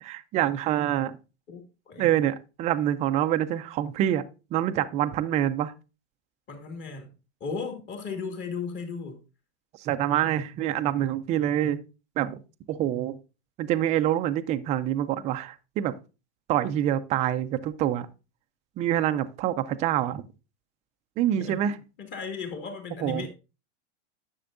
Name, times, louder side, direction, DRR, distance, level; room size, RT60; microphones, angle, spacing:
voice 1, 0.0-1.2 2.0-4.2 4.5-5.7 9.8-11.8 12.2-12.4 12.7-13.2 13.6-15.9 16.5-18.1 18.8-20.2 21.2-21.7 23.0-23.3, right 11 dB, 20° right, 0.3 m, -26 dB
voice 2, 6.5-7.1 7.4-9.2 21.4-21.6 22.0-23.3, left 5 dB, 35° left, 2.2 m, -35 dB
10.0 x 6.9 x 2.5 m
supercardioid pair, 140°, 34 cm